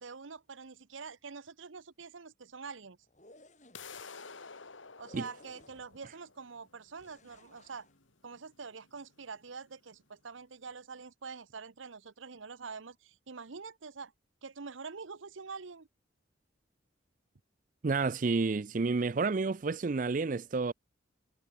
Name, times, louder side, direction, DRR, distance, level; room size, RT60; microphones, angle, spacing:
voice 1, 0.0-3.0 5.0-7.9 8.2-14.1 14.4-15.9, right 5 dB, 85° right, 0.9 m, -45 dB
sound 1, 3.0-4.0 5.0-6.1 7.0-8.0, left 1 dB, 40° left, 6.5 m, -58 dB
sound 2, 3.7-9.7, left 5 dB, 85° left, 2.6 m, -51 dB
voice 2, 17.8-20.7, right 4 dB, 40° right, 0.4 m, -30 dB
head